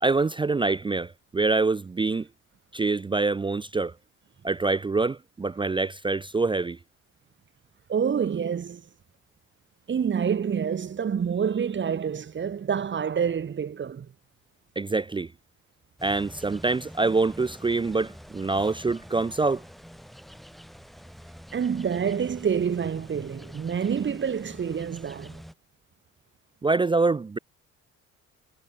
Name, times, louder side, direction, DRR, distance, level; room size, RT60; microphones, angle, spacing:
voice 1, 0.0-2.3 2.7-3.9 4.4-6.8 14.8-15.3 16.0-19.6 26.6-27.4, right 3 dB, 15° right, 0.4 m, -25 dB
voice 2, 7.9-8.8 9.9-14.1 21.5-25.4, right 7 dB, 40° right, 1.3 m, -27 dB
sound 1, 16.0-25.5, equal, ahead, 5.6 m, -46 dB
cardioid pair, 90°, 30 cm